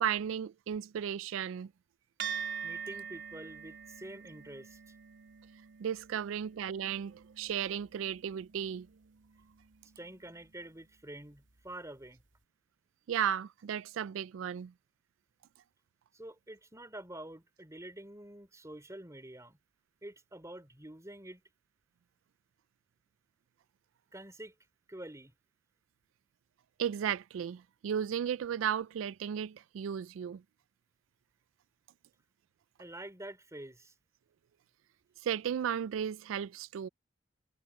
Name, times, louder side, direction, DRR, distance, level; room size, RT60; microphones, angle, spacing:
voice 1, 0.0-1.7 5.8-8.9 13.1-14.7 26.8-30.4 35.2-36.9, right 9 dB, 85° right, 0.3 m, -34 dB
sound 1, 2.2-10.9, right 7 dB, 65° right, 3.0 m, -45 dB
voice 2, 2.6-4.8 10.0-12.2 16.1-19.6 20.0-21.4 24.1-24.5 24.9-25.3 32.8-33.9, right 1 dB, 15° right, 3.9 m, -47 dB
head